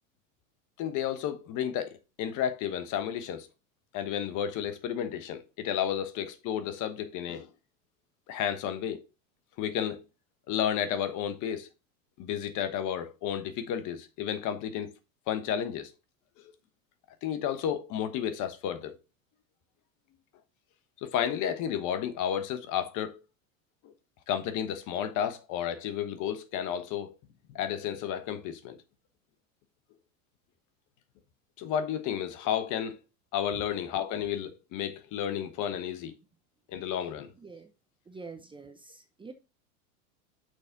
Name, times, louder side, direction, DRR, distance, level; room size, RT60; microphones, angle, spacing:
voice 1, 0.8-3.5 3.9-7.5 8.3-9.0 9.6-10.0 10.5-11.7 12.2-14.9 15.3-15.9 17.2-19.0 21.0-23.2 23.8-23.9 24.3-27.1 27.5-28.8 31.6-33.0 33.3-36.1 36.7-37.3, left 9 dB, 45° left, 1.2 m, -32 dB
voice 2, 37.4-37.7 38.1-39.3, right 4 dB, 10° right, 0.7 m, -46 dB
6.3 x 4.1 x 4.6 m
supercardioid pair, 110°, 40 cm